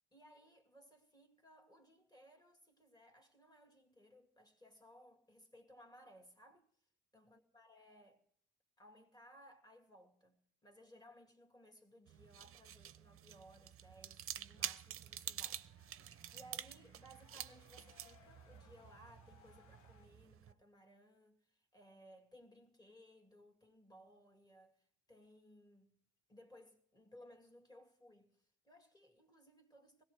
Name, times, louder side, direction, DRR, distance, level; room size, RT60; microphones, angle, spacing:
voice 1, 0.1-6.7 7.1-8.2 8.8-15.7 16.3-26.0 26.3-30.0, equal, 15° left, 2.3 m, -62 dB
sound 1, 12.1-20.5, right 10 dB, 45° right, 0.6 m, -48 dB
sound 2, 14.8-20.1, left 11 dB, 75° left, 0.8 m, -69 dB
21.0 x 17.0 x 3.2 m
cardioid pair, 90°, 30 cm